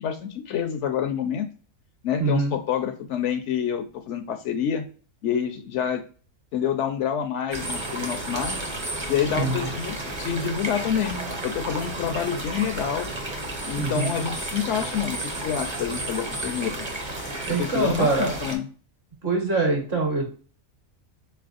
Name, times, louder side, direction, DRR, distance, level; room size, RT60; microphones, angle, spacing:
voice 1, 0.0-1.5 2.0-4.8 5.2-6.0 6.5-8.6 9.1-13.1 13.7-16.7 17.6-18.7, left 8 dB, 70° left, 7 dB, 0.8 m, -27 dB
voice 2, 2.2-2.6 9.3-9.7 13.7-14.2 17.5-18.3 19.2-20.3, right 3 dB, 50° right, 1 dB, 1.5 m, -24 dB
sound 1, 7.5-18.6, right 1 dB, 25° right, 0.8 m, -32 dB
4.2 x 3.3 x 2.4 m, 0.40 s
omnidirectional pair, 1.4 m